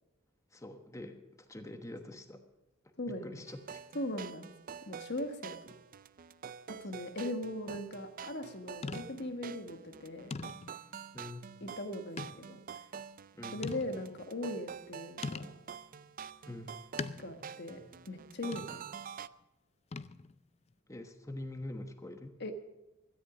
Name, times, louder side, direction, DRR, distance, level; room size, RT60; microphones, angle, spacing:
voice 1, 0.5-2.4 3.1-3.8 11.1-11.5 13.3-13.6 16.5-16.7 17.8-18.1 20.9-22.4, left 1 dB, 15° left, 7 dB, 1.2 m, -45 dB
voice 2, 3.0-3.4 3.9-4.5 4.9-5.6 6.7-10.3 11.6-12.6 13.5-15.5 17.2-17.8 18.1-18.9 22.4-22.5, left 1 dB, 55° left, 7 dB, 1.6 m, -39 dB
sound 1, 3.5-19.3, right 7 dB, 40° right, 0.4 m, -47 dB
sound 2, 7.7-8.0 8.8-9.4 9.9-10.0 10.3-10.9 12.2-12.5 13.0-13.1 13.6-14.3 15.2-15.7 17.0-17.6 18.5-18.9 19.9-20.4, left 4 dB, 30° left, 0.4 m, -42 dB
17.0 x 13.0 x 5.1 m, 1.0 s
head